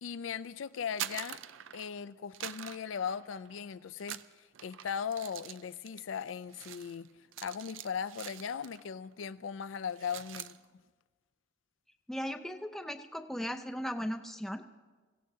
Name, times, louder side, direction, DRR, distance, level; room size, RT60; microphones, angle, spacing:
voice 1, 0.0-1.4 1.7-7.1 7.4-10.6, left 7 dB, 80° left, 0.4 m, -38 dB
sound 1, 0.8-2.0 2.3-3.6 4.0-8.9 9.2-9.4 9.8-10.6, right 11 dB, 80° right, 0.4 m, -45 dB
voice 2, 12.1-14.6, equal, ahead, 0.5 m, -37 dB
25.0 x 16.0 x 2.7 m
head